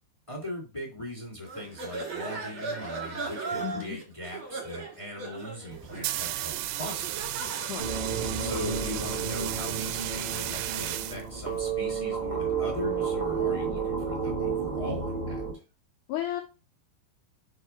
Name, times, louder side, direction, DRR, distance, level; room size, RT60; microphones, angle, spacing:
voice 1, 0.3-7.5 8.4-15.4, left 1 dB, 15° left, -1 dB, 1.0 m, -39 dB
sound 1, 1.5-8.9, right 4 dB, 45° right, 2.1 m, -38 dB
voice 2, 3.6-4.0 7.6-8.1 16.1-16.4, left 12 dB, 75° left, 3 dB, 1.9 m, -34 dB
sound 2, 5.7-11.7, right 14 dB, 80° right, 2.2 m, -34 dB
sound 3, 7.8-15.5, right 6 dB, 15° right, 2.1 m, -31 dB
4.7 x 4.7 x 5.5 m, 0.30 s
omnidirectional pair, 4.4 m